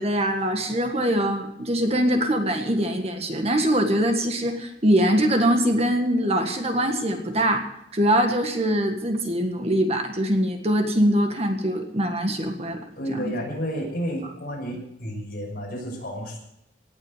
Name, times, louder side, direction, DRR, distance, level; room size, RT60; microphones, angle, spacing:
voice 1, 0.0-12.8 13.1-13.3, equal, 35° right, 4 dB, 1.6 m, -23 dB
voice 2, 13.0-16.4, equal, 50° left, -1 dB, 6.1 m, -31 dB
18.0 x 8.1 x 8.0 m, 0.79 s
head